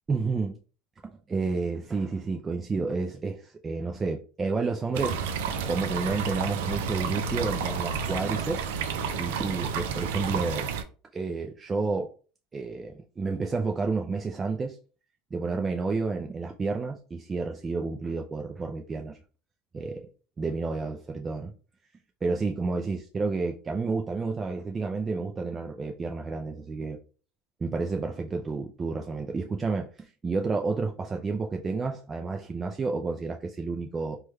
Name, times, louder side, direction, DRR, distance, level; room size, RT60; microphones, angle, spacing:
voice 1, 0.1-0.5 1.0-8.6 9.2-10.7 11.1-12.1 12.5-14.8 15.3-19.2 19.7-20.1 20.4-21.5 22.2-27.0 27.6-34.2, right 4 dB, 20° right, 0.3 m, -30 dB
sound 1, 4.9-10.8, right 6 dB, 85° right, 0.4 m, -30 dB
3.3 x 2.2 x 3.1 m
supercardioid pair, 130°, 0 cm